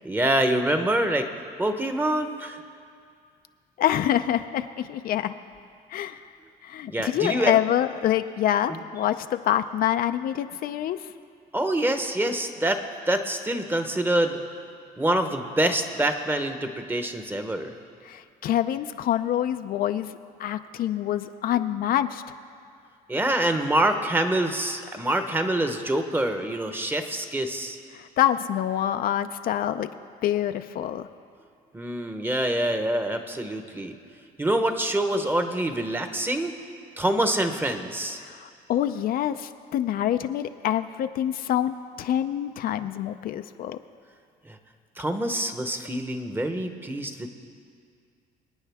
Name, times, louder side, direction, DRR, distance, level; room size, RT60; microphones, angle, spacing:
voice 1, 0.0-1.3 1.6-2.6 6.9-7.6 11.5-14.4 15.0-17.7 23.1-27.8 31.7-33.9 34.4-36.6 37.0-38.2 44.5-44.6 45.0-47.3, right 1 dB, 10° right, 7 dB, 1.0 m, -26 dB
voice 2, 3.8-5.3 5.9-6.2 6.6-11.0 18.0-20.1 20.4-22.2 27.9-29.9 30.2-31.1 38.2-43.8, left 11 dB, 60° left, 9 dB, 0.5 m, -26 dB
26.5 x 9.2 x 3.5 m, 2.3 s
cardioid pair, 110°, 17 cm